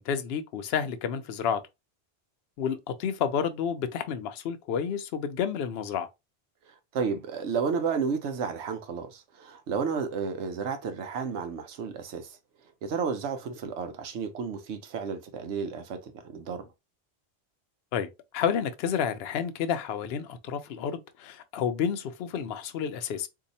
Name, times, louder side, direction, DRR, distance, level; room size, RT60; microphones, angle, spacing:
voice 1, 0.0-1.6 2.6-6.1 17.9-23.3, left 7 dB, 70° left, 0.8 m, -30 dB
voice 2, 6.9-12.4 12.8-16.7, right 6 dB, 80° right, 1.0 m, -32 dB
2.7 x 2.3 x 4.0 m
omnidirectional pair, 1.1 m